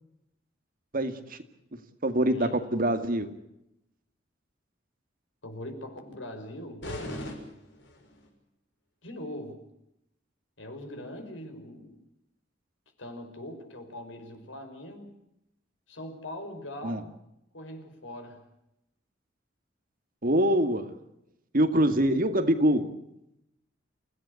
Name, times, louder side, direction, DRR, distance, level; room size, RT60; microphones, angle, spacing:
voice 1, 0.9-1.4 2.0-3.3 16.8-17.0 20.2-20.9 21.5-22.9, right 1 dB, 50° right, 8 dB, 2.2 m, -24 dB
voice 2, 2.2-2.6 5.4-7.3 9.0-9.6 10.6-12.0 13.0-15.2 15.9-17.1 17.5-18.5, left 1 dB, 85° left, 6 dB, 5.3 m, -42 dB
sound 1, 6.8-8.3, left 1 dB, 70° left, 6.1 m, -39 dB
28.5 x 16.5 x 8.4 m, 0.83 s
head